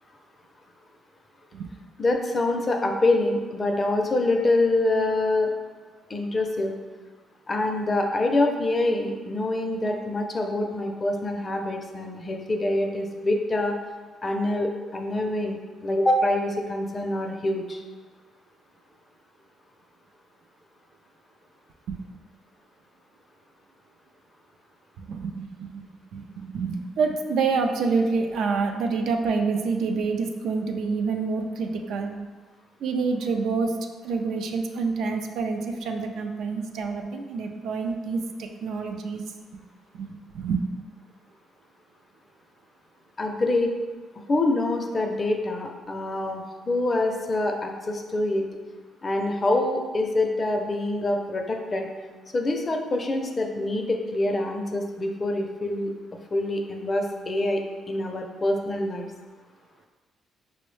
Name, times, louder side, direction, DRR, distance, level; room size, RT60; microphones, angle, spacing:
voice 1, 2.0-5.5 6.1-6.7 7.5-13.8 14.2-17.8 43.2-43.7 44.3-48.5 49.0-51.9 52.3-55.9 56.3-59.0, left 2 dB, 30° left, 3 dB, 0.4 m, -25 dB
voice 2, 25.0-25.8 26.1-32.2 32.8-33.7 34.0-39.2 39.9-40.6, right 4 dB, 75° right, 4 dB, 0.3 m, -27 dB
4.4 x 2.0 x 3.1 m, 1.4 s
cardioid pair, 90°, 0 cm